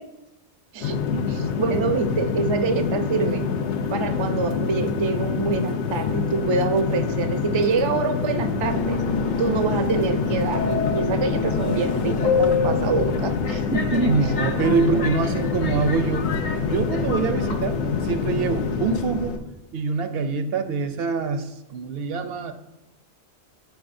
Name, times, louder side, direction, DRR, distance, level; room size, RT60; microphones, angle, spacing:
voice 1, 0.7-3.5 3.9-9.0 9.4-14.4 14.6-15.0, right 4 dB, 35° right, 7 dB, 0.4 m, -26 dB
sound 1, 0.8-19.4, left 6 dB, 85° left, 1.0 m, -26 dB
Subway metro underground, 8.6-19.4, left 4 dB, 50° left, 0.7 m, -29 dB
voice 2, 14.1-16.3 16.7-19.4 19.7-22.5, right 5 dB, 70° right, 9 dB, 0.8 m, -25 dB
12.5 x 4.7 x 2.6 m, 0.97 s
omnidirectional pair, 1.1 m